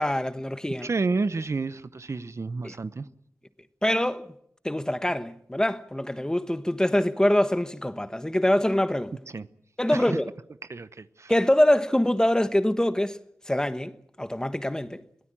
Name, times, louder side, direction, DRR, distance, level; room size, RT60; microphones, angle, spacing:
voice 1, 0.0-0.9 2.6-2.7 3.8-4.3 4.6-9.1 9.8-10.3 11.3-13.2 13.5-15.0, left 1 dB, 15° left, 1.3 m, -24 dB
voice 2, 0.8-3.1 9.3-9.5 9.9-10.2 10.7-11.3, right 3 dB, 60° right, 0.9 m, -30 dB
23.0 x 17.5 x 8.9 m
wide cardioid pair, 60°, 5 cm